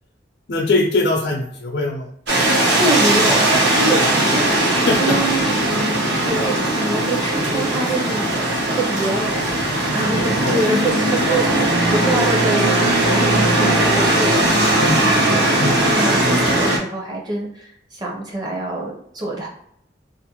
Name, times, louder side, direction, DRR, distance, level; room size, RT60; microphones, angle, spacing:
voice 1, 0.5-2.1 4.9-5.2 10.4-10.6 14.8-15.0 15.6-15.8, left 2 dB, 70° left, -1 dB, 0.5 m, -21 dB
sound 1, 2.3-16.8, right 1 dB, 75° right, 0.9 m, -18 dB
voice 2, 2.7-5.5 5.9-9.4 9.9-14.8 15.3-19.5, right 2 dB, 25° right, -1 dB, 0.6 m, -25 dB
2.5 x 2.5 x 2.9 m, 0.68 s
head